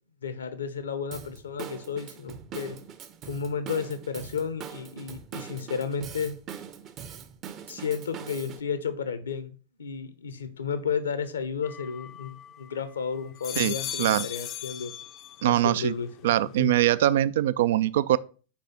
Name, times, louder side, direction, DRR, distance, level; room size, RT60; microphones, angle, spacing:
voice 1, 0.2-2.8 3.2-6.4 7.7-14.9 15.4-16.7, left 6 dB, 70° left, 0.8 m, -33 dB
Drum kit / Drum, 1.1-8.6, right 8 dB, 35° right, 0.7 m, -42 dB
sound 1, 11.6-12.8 13.2-15.6 16.0-16.6, left 11 dB, 35° left, 0.5 m, -38 dB
voice 2, 13.6-14.3 15.4-15.9 16.2-18.2, right 13 dB, 55° right, 0.3 m, -23 dB
4.8 x 4.6 x 5.8 m
figure-of-eight pair, 90°, 0 cm